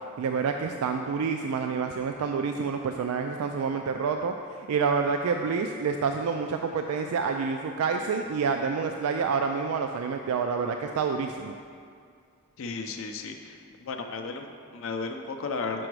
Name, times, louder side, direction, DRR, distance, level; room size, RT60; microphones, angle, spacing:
voice 1, 0.2-11.5, right 5 dB, 80° right, 5 dB, 0.3 m, -28 dB
voice 2, 12.6-15.9, left 4 dB, 60° left, 4 dB, 0.4 m, -34 dB
6.1 x 5.0 x 4.7 m, 2.2 s
head